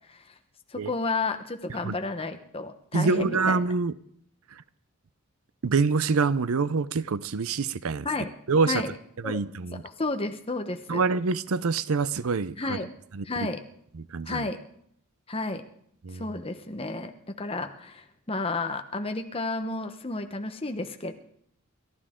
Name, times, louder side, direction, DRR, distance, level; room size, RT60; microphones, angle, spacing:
voice 1, 0.7-3.6 8.0-8.3 8.7-8.9 9.2-9.4 9.7-11.0 12.6-12.9 13.2-13.6 14.3-14.6 15.3-15.6 16.1-21.1, left 3 dB, 25° left, 1.0 m, -32 dB
voice 2, 2.9-3.9 5.6-8.1 8.5-8.8 9.2-9.8 10.9-12.8 13.1-13.5 13.9-14.5 16.0-16.2, right 4 dB, 75° right, 0.6 m, -26 dB
29.5 x 12.0 x 3.7 m
head